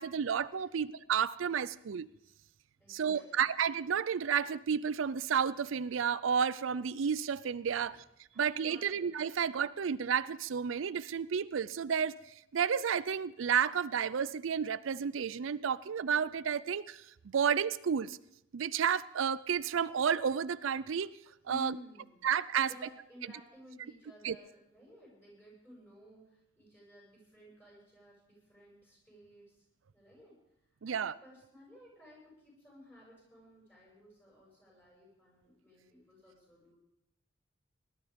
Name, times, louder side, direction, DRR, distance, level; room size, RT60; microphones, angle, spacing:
voice 1, 0.0-2.1 2.9-8.0 8.4-12.2 12.5-18.2 18.5-21.1 21.5-21.8 22.2-22.7 24.2-24.3 30.8-31.2, right 7 dB, 90° right, 0.5 m, -31 dB
voice 2, 2.8-3.5 7.7-8.0 8.3-9.0 21.4-22.3 22.6-29.6 29.9-30.4 30.8-36.8, equal, 10° left, 7.6 m, -55 dB
19.0 x 12.0 x 5.2 m
head